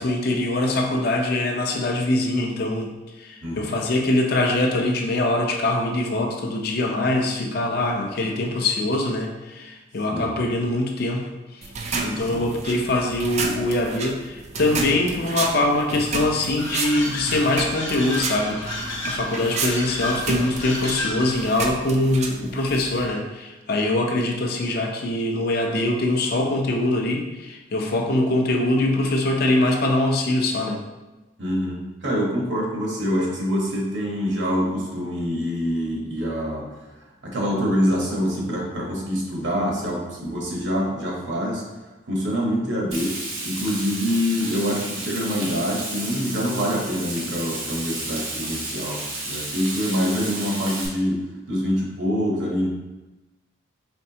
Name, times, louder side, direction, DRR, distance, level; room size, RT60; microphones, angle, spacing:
voice 1, 0.0-11.7 12.0-30.8, left 2 dB, 50° left, 1 dB, 0.5 m, -23 dB
voice 2, 3.4-3.7 10.1-10.4 12.3-12.5 31.4-36.7 37.2-41.6 42.1-43.2 43.4-51.2 51.5-52.7, equal, 65° right, -2 dB, 1.0 m, -25 dB
sound 1, 11.6-23.1, right 3 dB, 35° right, 0.3 m, -31 dB
sound 2, 16.6-21.7, left 1 dB, 65° left, 1.0 m, -32 dB
Frying (food), 42.9-50.9, right 2 dB, 90° right, 1.0 m, -32 dB
4.4 x 3.1 x 2.7 m, 1.1 s
head